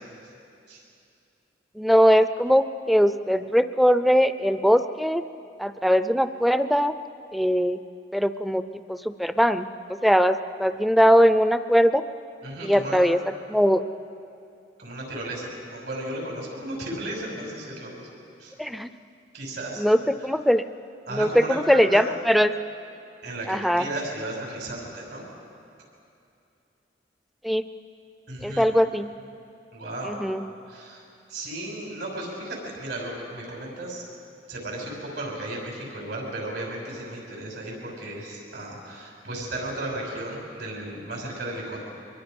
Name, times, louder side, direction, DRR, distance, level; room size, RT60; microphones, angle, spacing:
voice 1, 1.7-5.2 5.6-6.9 7.3-7.8 8.1-8.6 8.9-9.7 10.0-12.0 12.6-13.2 13.5-13.8 18.6-18.9 19.8-20.6 21.1-22.5 23.5-23.9 27.4-27.6 28.4-29.1 30.0-30.4, equal, ahead, 11 dB, 0.5 m, -20 dB
voice 2, 12.4-13.0 14.8-18.1 18.4-18.5 19.3-19.8 21.1-22.1 23.2-25.3 28.3-28.7 29.7-30.2 30.7-34.0 34.5-41.8, right 1 dB, 80° right, -2 dB, 6.4 m, -34 dB
24.5 x 22.5 x 5.3 m, 2.5 s
head